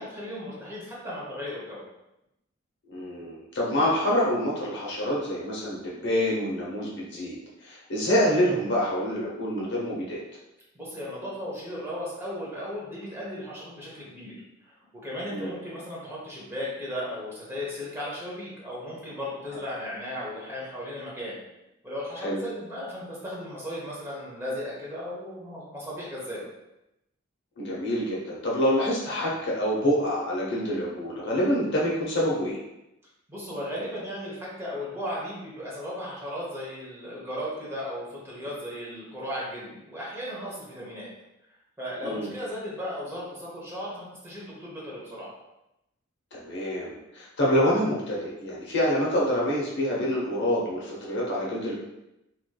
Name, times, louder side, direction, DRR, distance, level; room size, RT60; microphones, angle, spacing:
voice 1, 0.0-1.8 10.7-14.3 14.6-14.7 15.0-21.4 21.8-26.5 33.3-41.1 41.8-45.3, equal, 10° right, -7 dB, 1.0 m, -36 dB
voice 2, 2.9-7.4 7.6-10.2 15.3-15.5 22.2-22.4 27.6-32.6 42.0-42.3 46.3-51.7, equal, 60° left, -5 dB, 0.8 m, -26 dB
3.2 x 2.9 x 2.3 m, 0.90 s
head